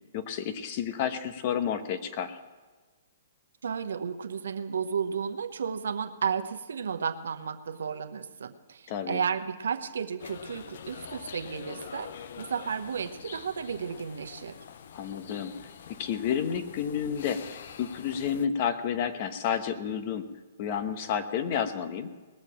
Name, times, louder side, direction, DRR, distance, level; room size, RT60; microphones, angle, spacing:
voice 1, 0.1-2.4 8.9-9.2 14.9-15.5 16.0-20.2 20.6-22.1, left 8 dB, 45° left, 9 dB, 1.0 m, -30 dB
voice 2, 3.6-14.6, right 6 dB, 80° right, 7 dB, 0.9 m, -33 dB
sound 1, 10.2-18.5, left 7 dB, 65° left, 0.7 m, -45 dB
19.5 x 6.7 x 7.3 m, 1.3 s
hypercardioid pair, 145°, 0 cm